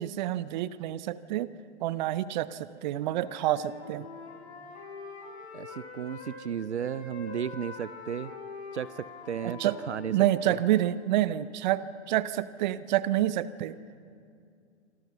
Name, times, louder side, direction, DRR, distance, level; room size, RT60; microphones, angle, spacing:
voice 1, 0.0-1.5 1.8-4.1 9.4-9.8 10.1-13.8, right 13 dB, 40° right, 16 dB, 0.9 m, -28 dB
Wind instrument woodwind instrument, 2.9-6.4 6.8-11.0, left 4 dB, 65° left, 7.6 m, -44 dB
voice 2, 5.5-8.3 8.7-10.1 10.5-10.6, right 8 dB, 70° right, 17 dB, 0.7 m, -34 dB
26.5 x 25.5 x 5.8 m, 2.3 s
figure-of-eight pair, 110°, 35 cm